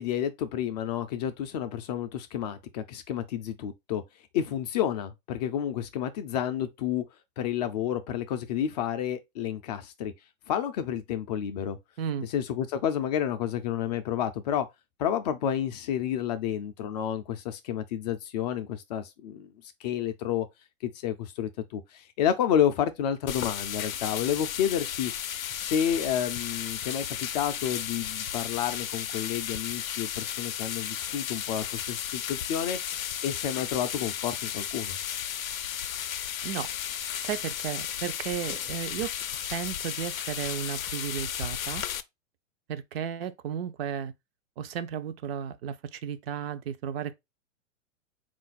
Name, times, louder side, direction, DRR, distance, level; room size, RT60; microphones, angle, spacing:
voice 1, 0.0-4.0 4.3-7.0 7.4-10.1 10.5-11.8 12.3-14.7 15.0-19.5 19.8-20.5 20.8-25.1 25.5-32.8 33.2-35.0, left 9 dB, 35° left, 0.4 m, -30 dB
sound 1, 23.3-42.0, left 10 dB, 85° left, 0.5 m, -34 dB
voice 2, 37.2-41.8 42.7-44.1 44.6-47.1, right 8 dB, 50° right, 0.5 m, -34 dB
3.7 x 2.5 x 3.9 m
hypercardioid pair, 110°, 40 cm